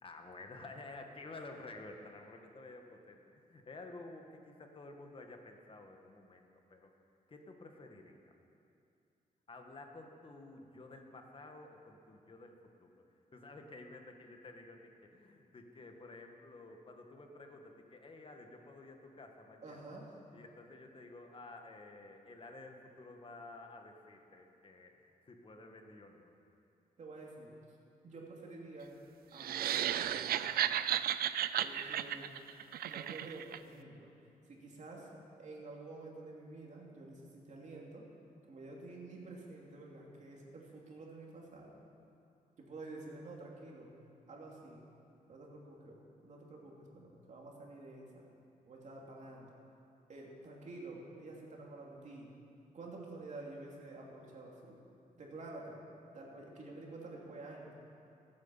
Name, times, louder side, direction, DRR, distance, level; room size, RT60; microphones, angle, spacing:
voice 1, 0.0-6.4 6.7-6.9 7.3-8.2 9.5-12.9 13.3-19.8 20.3-25.0 25.3-26.3, left 2 dB, 35° left, 3 dB, 1.6 m, -52 dB
voice 2, 19.6-20.2 27.0-27.5 28.0-28.9 29.3-30.7 31.6-32.3 32.8-34.1 34.5-35.1 35.4-38.1 38.5-41.8 42.6-43.9 44.3-44.8 45.3-48.3 48.6-49.5 50.1-52.3 52.7-54.8 55.1-55.8 56.1-57.7, right 2 dB, 50° right, -2 dB, 2.9 m, -49 dB
sound 1, 29.4-33.6, right 11 dB, 90° right, 0.5 m, -34 dB
15.5 x 9.6 x 7.3 m, 2.6 s
cardioid pair, 115°, 15 cm